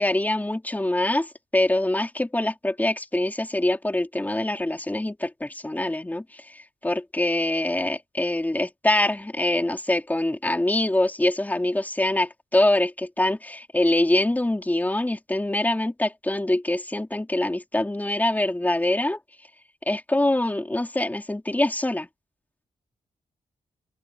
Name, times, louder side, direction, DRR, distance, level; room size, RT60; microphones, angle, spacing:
voice 1, 0.0-19.2 19.9-22.1, left 1 dB, 10° left, 3.5 m, -24 dB
open air
cardioid pair, 95°, 14 cm